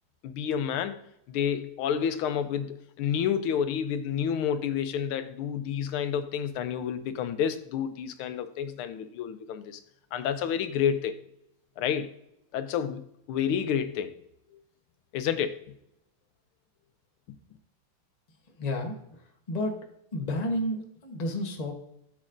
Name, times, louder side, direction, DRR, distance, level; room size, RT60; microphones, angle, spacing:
voice 1, 0.2-1.0 1.3-9.8 10.1-11.2 11.8-12.1 12.5-14.1 14.5-14.6 15.1-15.6, left 8 dB, 80° left, 11 dB, 1.5 m, -29 dB
voice 2, 18.6-19.9 20.1-21.7, left 1 dB, 30° left, 2 dB, 0.8 m, -31 dB
13.0 x 7.2 x 2.6 m, 0.77 s
omnidirectional pair, 2.4 m